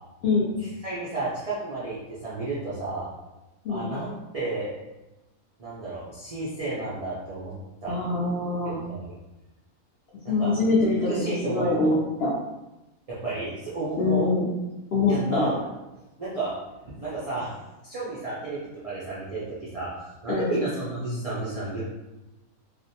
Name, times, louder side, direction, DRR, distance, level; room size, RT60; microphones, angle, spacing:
voice 1, 0.6-3.1 3.7-4.7 5.6-7.5 7.8-8.0 8.6-9.2 10.2-10.5 11.1-11.9 13.1-14.3 15.1-15.6 16.2-16.5 17.0-17.5 17.8-21.8, right 2 dB, 70° right, -9 dB, 0.3 m, -32 dB
voice 2, 7.9-8.8 10.3-12.3 14.0-14.5 14.9-15.5 20.3-20.6, left 3 dB, 65° left, -6 dB, 0.6 m, -24 dB
2.5 x 2.1 x 2.7 m, 1.0 s
omnidirectional pair, 1.5 m